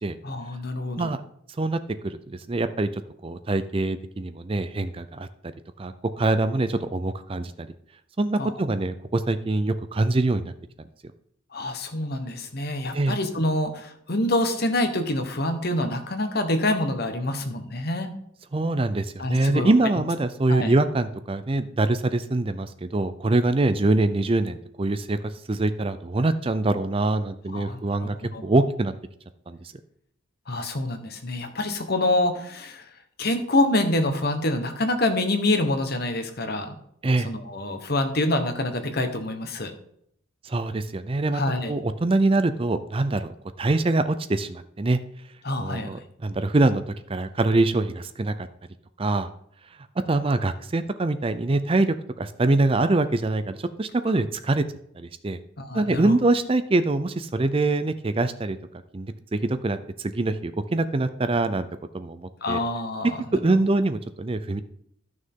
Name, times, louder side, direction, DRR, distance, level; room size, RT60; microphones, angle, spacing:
voice 1, 0.2-1.1 8.4-8.5 11.5-18.1 19.2-19.7 20.5-20.7 27.5-28.4 30.5-32.8 33.2-36.8 37.2-39.7 41.3-41.7 45.4-45.9 55.6-56.1 62.4-63.1, left 1 dB, 50° left, 7 dB, 1.3 m, -26 dB
voice 2, 1.6-2.9 3.2-5.5 5.8-7.7 8.2-10.5 12.9-13.2 18.5-25.2 25.5-28.1 28.4-28.9 29.5-29.6 37.0-37.3 40.4-41.4 41.7-45.0 45.6-46.8 47.1-48.5 49.0-49.3 50.1-54.7 54.9-55.4 55.7-58.6 58.9-61.7 61.9-62.6 63.3-64.6, right 2 dB, 25° right, 11 dB, 0.4 m, -24 dB
14.0 x 6.4 x 3.7 m, 0.70 s
head